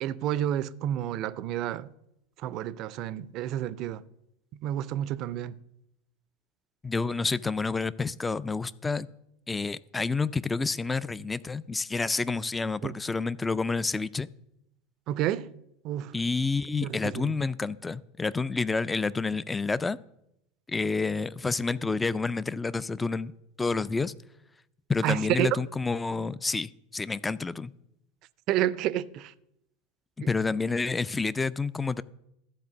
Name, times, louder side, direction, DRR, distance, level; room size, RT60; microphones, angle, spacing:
voice 1, 0.0-1.9 2.4-4.0 4.6-5.5 12.8-12.9 15.1-15.5 15.8-16.1 16.8-17.3 25.0-25.5 28.5-29.3, right 12 dB, 50° right, 0.4 m, -30 dB
voice 2, 6.8-9.1 9.5-14.3 16.1-20.0 20.7-23.3 23.6-24.1 24.9-27.7 30.3-32.0, left 4 dB, 15° left, 0.3 m, -29 dB
12.5 x 4.3 x 6.9 m
hypercardioid pair, 90°, 0 cm